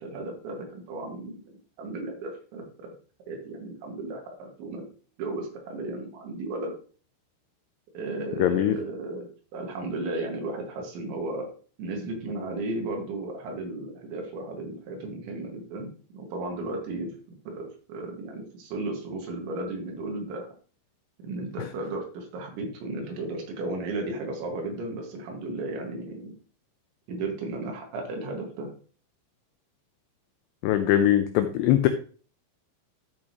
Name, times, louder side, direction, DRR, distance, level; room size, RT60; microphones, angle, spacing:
voice 1, 0.0-1.5 1.8-2.9 3.3-4.9 5.2-6.8 7.9-9.3 9.5-11.5 11.8-17.1 17.5-20.5 21.2-26.3 27.1-28.7, right 2 dB, 75° right, 1 dB, 4.0 m, -34 dB
voice 2, 8.4-8.8 30.6-31.9, left 12 dB, 85° left, 9 dB, 2.4 m, -21 dB
12.0 x 6.3 x 3.0 m, 0.41 s
omnidirectional pair, 5.6 m